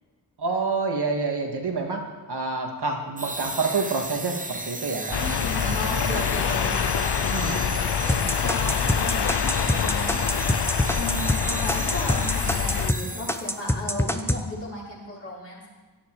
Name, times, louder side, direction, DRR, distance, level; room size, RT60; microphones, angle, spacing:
voice 1, 0.4-2.0 2.3-5.4 5.8-6.2 7.3-7.6, right 4 dB, 80° right, 2 dB, 2.2 m, -28 dB
sound 1, 3.2-13.7, right 2 dB, 20° right, 0.9 m, -34 dB
sound 2, 5.1-12.9, left 8 dB, 90° left, 0.7 m, -26 dB
voice 2, 5.2-10.3 10.9-15.6, left 1 dB, 35° left, -7 dB, 5.8 m, -35 dB
sound 3, 8.1-13.0 13.3-14.4, left 1 dB, 5° left, 0.9 m, -25 dB
17.0 x 11.5 x 4.9 m, 1.3 s
wide cardioid pair, 95°, 39 cm